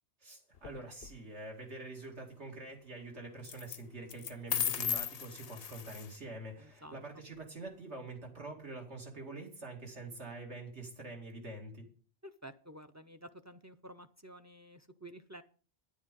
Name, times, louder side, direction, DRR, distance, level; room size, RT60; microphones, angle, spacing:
voice 1, 0.2-11.9, right 2 dB, 85° right, 0 dB, 2.9 m, -45 dB
sound 1, 0.6-1.1 3.4-3.8 4.1-6.2, left 8 dB, 65° left, 0.9 m, -36 dB
voice 2, 6.6-7.0 12.2-15.4, right 1 dB, 20° right, 10 dB, 0.4 m, -51 dB
10.5 x 10.0 x 5.3 m, 0.40 s
omnidirectional pair, 1.1 m